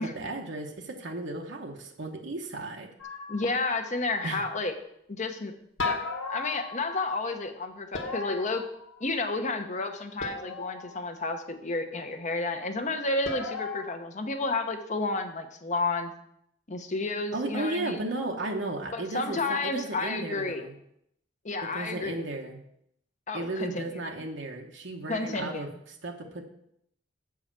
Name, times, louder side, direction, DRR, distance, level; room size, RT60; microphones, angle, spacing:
voice 1, 0.0-2.9 4.2-4.4 17.3-20.7 21.6-22.6 23.3-25.7 26.0-26.4, right 2 dB, 70° right, 2 dB, 1.0 m, -34 dB
sound 1, 3.0-3.9 5.8-7.2 7.9-9.2 10.2-11.0 13.2-13.9, left 4 dB, 90° left, 1.5 m, -36 dB
voice 2, 3.3-4.7 5.1-5.5 5.8-6.0 6.3-8.6 9.0-16.1 16.7-18.0 18.9-20.6 21.4-22.2 23.3-24.0 25.1-25.8, left 3 dB, 40° left, 7 dB, 0.9 m, -31 dB
7.8 x 4.9 x 7.3 m, 0.74 s
head